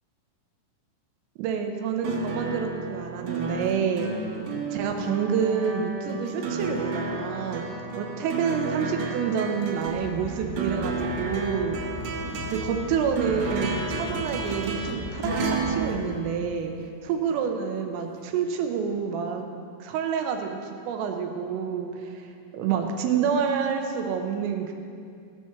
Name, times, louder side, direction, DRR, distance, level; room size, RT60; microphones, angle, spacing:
voice 1, 1.4-4.1 4.7-7.6 8.0-11.8 12.5-16.7 17.0-19.4 19.8-20.5 20.9-22.3 22.5-24.7, right 7 dB, 85° right, 4 dB, 3.4 m, -28 dB
sound 1, 2.0-16.9 18.2-18.3, right 3 dB, 65° right, 3.6 m, -32 dB
sound 2, 9.9-16.1, left 2 dB, 90° left, 5.3 m, -39 dB
17.0 x 7.3 x 6.2 m, 2.3 s
omnidirectional pair, 6.0 m